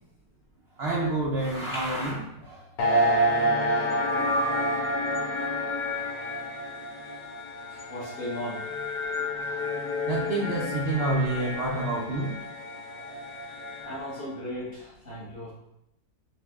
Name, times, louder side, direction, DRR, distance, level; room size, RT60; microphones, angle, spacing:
voice 1, 0.8-2.6 9.5-9.6 10.1-12.3, right 2 dB, 85° right, -3 dB, 0.5 m, -28 dB
sound 1, 2.8-14.2, equal, 80° left, 1.4 m, -29 dB
voice 2, 7.7-8.6 13.8-15.5, left 1 dB, 40° left, -6 dB, 0.9 m, -36 dB
5.8 x 2.1 x 3.4 m, 0.82 s
omnidirectional pair, 1.8 m